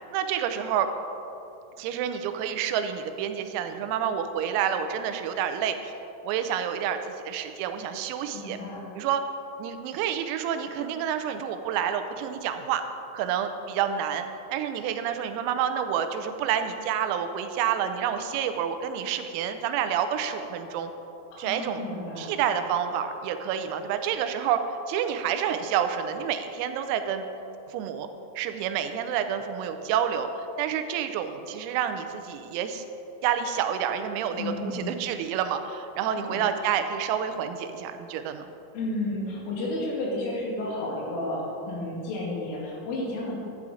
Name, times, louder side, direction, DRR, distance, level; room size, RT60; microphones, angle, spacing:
voice 1, 0.1-0.9 1.8-5.9 6.2-8.6 8.9-9.2 9.6-12.9 13.1-20.9 21.4-21.8 22.2-24.6 24.9-27.3 27.7-28.1 28.4-30.3 30.6-32.8 33.2-38.5, right 8 dB, 85° right, 8 dB, 3.5 m, -28 dB
voice 2, 8.3-8.9 21.3-22.3 34.4-35.0 36.0-36.4 38.7-43.4, left 2 dB, 75° left, -3 dB, 4.6 m, -32 dB
12.0 x 10.0 x 4.9 m, 2.9 s
omnidirectional pair, 6.0 m